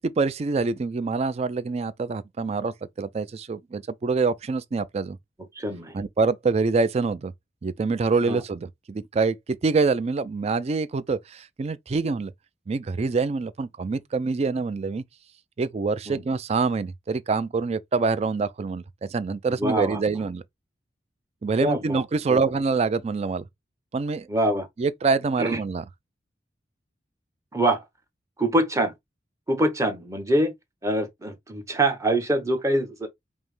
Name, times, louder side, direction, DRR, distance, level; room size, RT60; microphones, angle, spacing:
voice 1, 0.0-5.2 5.9-7.3 7.6-9.4 9.6-12.3 12.7-15.0 15.6-18.8 19.1-20.4 21.4-23.4 23.9-24.3 24.8-25.8, right 4 dB, 35° right, 0.3 m, -25 dB
voice 2, 5.6-6.0 8.3-8.4 16.1-16.2 19.5-20.0 21.6-22.0 22.3-22.4 24.3-24.7 25.4-25.6 27.5-27.8 28.4-28.9 29.5-30.5 30.8-33.1, right 1 dB, 15° right, 0.8 m, -24 dB
5.4 x 2.1 x 3.1 m
head